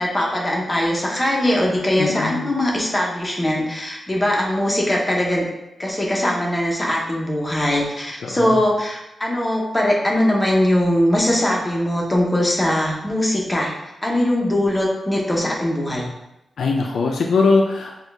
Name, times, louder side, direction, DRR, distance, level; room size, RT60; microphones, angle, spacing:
voice 1, 0.0-5.4 5.8-13.7 14.0-16.1, left 1 dB, 15° left, -2 dB, 0.9 m, -21 dB
voice 2, 2.0-2.5 8.2-8.6 16.6-17.9, left 4 dB, 85° left, 1 dB, 0.4 m, -20 dB
6.1 x 2.4 x 3.4 m, 0.92 s
wide cardioid pair, 120°, 0 cm